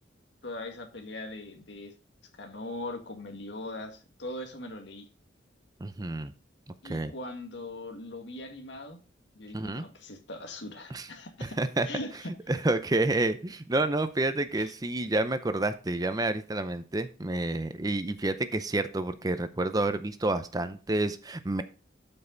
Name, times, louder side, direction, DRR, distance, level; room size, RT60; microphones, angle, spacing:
voice 1, 0.4-1.9 2.3-5.1 6.8-9.0 9.3-11.6 11.8-12.3 14.6-14.7, left 2 dB, 70° left, 5 dB, 1.8 m, -40 dB
voice 2, 5.8-6.3 6.8-7.1 9.5-9.8 10.9-11.1 11.4-11.9 12.5-21.6, right 2 dB, 20° right, 11 dB, 0.5 m, -29 dB
12.5 x 5.5 x 3.9 m, 0.36 s
head